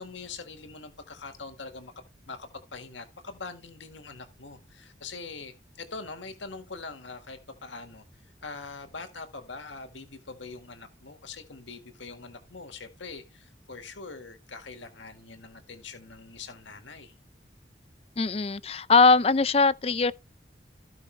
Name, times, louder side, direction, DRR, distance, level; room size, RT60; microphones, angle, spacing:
voice 1, 0.0-1.9 2.2-8.0 8.4-17.2, left 4 dB, 85° left, 1.8 m, -43 dB
voice 2, 18.2-20.1, left 4 dB, 30° left, 0.5 m, -21 dB
16.5 x 5.6 x 3.3 m
head